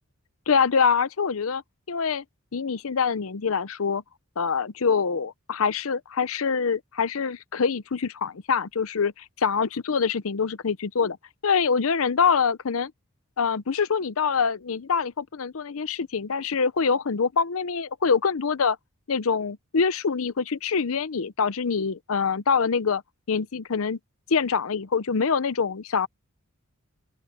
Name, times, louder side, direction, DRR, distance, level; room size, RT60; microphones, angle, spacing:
voice 1, 0.5-1.6 1.9-2.2 2.5-4.0 4.4-11.2 11.4-12.9 13.4-18.8 19.1-23.0 23.3-24.0 24.3-26.1, left 5 dB, 70° left, 0.7 m, -25 dB
open air
head